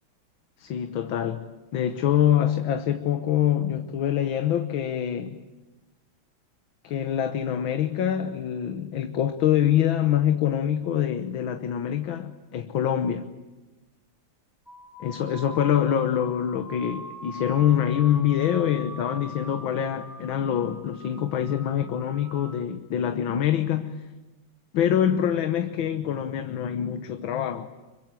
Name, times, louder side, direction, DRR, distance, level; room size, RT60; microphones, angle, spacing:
voice 1, 0.6-1.4 1.7-5.4 6.8-13.3 15.0-24.0 24.7-27.7, left 10 dB, 75° left, 8 dB, 1.8 m, -25 dB
sound 1, 14.7-22.6, equal, ahead, 2.8 m, -42 dB
26.0 x 23.5 x 9.0 m, 1.1 s
omnidirectional pair, 2.2 m